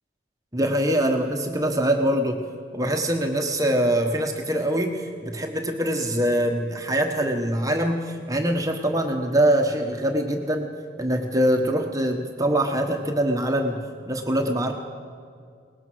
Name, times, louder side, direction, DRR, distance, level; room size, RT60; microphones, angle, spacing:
voice 1, 0.5-2.4 2.7-10.7 11.0-13.8 14.1-14.7, right 1 dB, 20° right, 3 dB, 1.2 m, -23 dB
22.0 x 19.0 x 6.2 m, 2.2 s
head